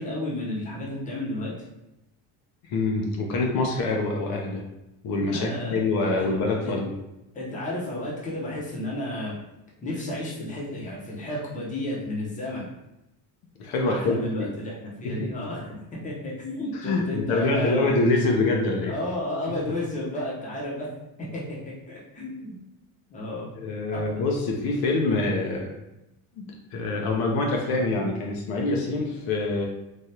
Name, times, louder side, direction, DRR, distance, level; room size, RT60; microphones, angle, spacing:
voice 1, 0.0-1.6 5.2-5.8 6.2-6.3 6.6-6.7 7.3-9.4 9.8-12.7 13.8-15.8 16.0-17.9 18.8-20.9 21.2-21.6 21.9-22.6 23.1-23.6 23.9-24.2, left 1 dB, 20° left, -5 dB, 0.7 m, -32 dB
voice 2, 2.6-4.7 5.0-6.9 13.6-14.5 15.0-15.5 16.7-18.9 23.6-25.7 26.4-29.6, left 2 dB, 65° left, 1 dB, 0.6 m, -25 dB
3.3 x 2.3 x 2.7 m, 0.92 s
cardioid pair, 155°, 40 cm